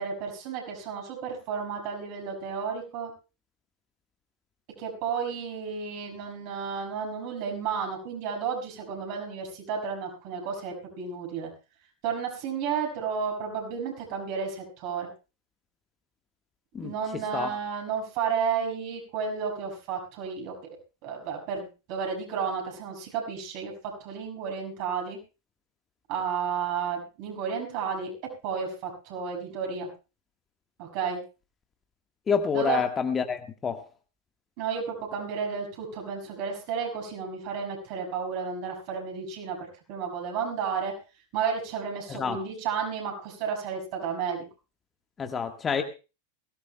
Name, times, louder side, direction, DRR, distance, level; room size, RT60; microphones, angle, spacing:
voice 1, 0.0-3.1 4.8-11.5 12.0-15.1 16.8-20.5 21.0-23.7 24.0-25.2 26.1-28.1 28.4-29.9 30.8-31.2 32.5-32.8 34.6-40.9 41.3-44.5, right 6 dB, 45° right, 1 dB, 6.0 m, -32 dB
voice 2, 16.7-17.5 32.3-33.8 42.1-42.4 45.2-45.8, left 6 dB, 20° left, 6 dB, 1.4 m, -28 dB
22.0 x 17.0 x 2.2 m, 0.32 s
figure-of-eight pair, 90°, 0 cm